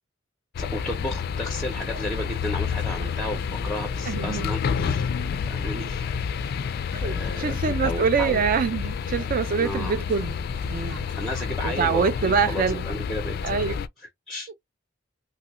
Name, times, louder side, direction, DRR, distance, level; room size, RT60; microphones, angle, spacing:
sound 1, 0.5-13.9, left 6 dB, 50° left, 0.3 m, -29 dB
voice 1, 0.6-5.1 5.5-6.5 7.0-8.4 9.6-10.0 11.2-13.4 14.3-14.5, left 1 dB, ahead, 0.6 m, -33 dB
sound 2, 1.7-12.6, right 3 dB, 65° right, 1.0 m, -52 dB
voice 2, 4.1-4.5 6.9-10.3 10.7-11.1 11.6-12.8 13.4-13.7, right 6 dB, 45° right, 0.3 m, -25 dB
2.9 x 2.3 x 2.9 m
head